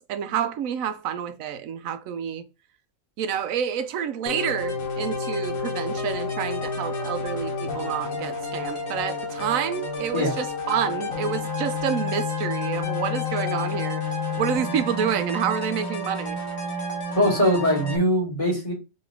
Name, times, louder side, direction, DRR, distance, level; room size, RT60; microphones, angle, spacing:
voice 1, 0.1-2.4 3.2-14.0 14.4-16.4, right 8 dB, 85° right, 1.0 m, -28 dB
sound 1, 4.3-18.0, left 3 dB, 85° left, 1.6 m, -30 dB
voice 2, 17.2-18.7, equal, 25° left, 2.0 m, -21 dB
3.9 x 3.7 x 3.4 m
omnidirectional pair, 1.4 m